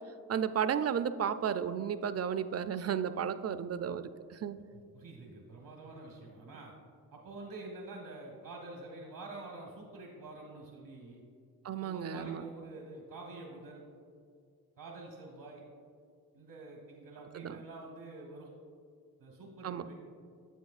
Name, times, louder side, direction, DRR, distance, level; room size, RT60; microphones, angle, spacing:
voice 1, 0.3-4.6 11.6-12.4 17.3-17.6 19.6-19.9, right 8 dB, 45° right, 12 dB, 0.4 m, -33 dB
voice 2, 4.7-6.7 7.1-11.2 11.8-13.8 14.8-15.6 16.3-18.5 19.2-19.9, right 2 dB, 85° right, -1 dB, 1.1 m, -47 dB
8.1 x 7.5 x 2.4 m, 2.2 s
cardioid pair, 45°, 37 cm